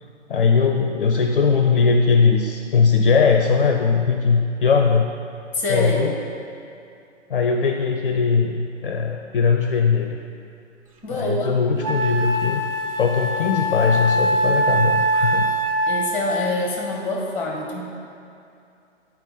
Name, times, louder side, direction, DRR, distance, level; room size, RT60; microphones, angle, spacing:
voice 1, 0.3-5.1 5.7-6.1 7.3-10.2 11.1-12.6 13.0-15.5, left 5 dB, 50° left, 4 dB, 0.5 m, -19 dB
voice 2, 5.5-6.1 11.0-11.7 15.9-17.8, left 2 dB, 5° left, -1 dB, 0.9 m, -25 dB
Wind instrument woodwind instrument, 11.2-11.3 11.8-16.5, right 1 dB, 30° right, 0.5 m, -22 dB
8.8 x 4.5 x 4.0 m, 2.6 s
figure-of-eight pair, 125°, 37 cm